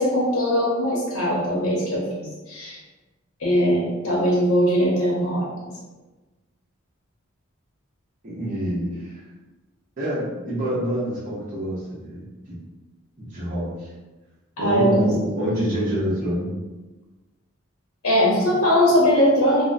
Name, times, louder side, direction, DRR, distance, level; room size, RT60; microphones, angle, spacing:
voice 1, 0.0-2.8 3.4-5.7 14.6-15.1 18.0-19.7, equal, 85° left, -5 dB, 0.7 m, -20 dB
voice 2, 8.2-9.2 10.0-12.3 13.2-13.9 14.6-16.5, equal, 35° right, -10 dB, 0.7 m, -26 dB
3.6 x 2.0 x 2.5 m, 1.2 s
head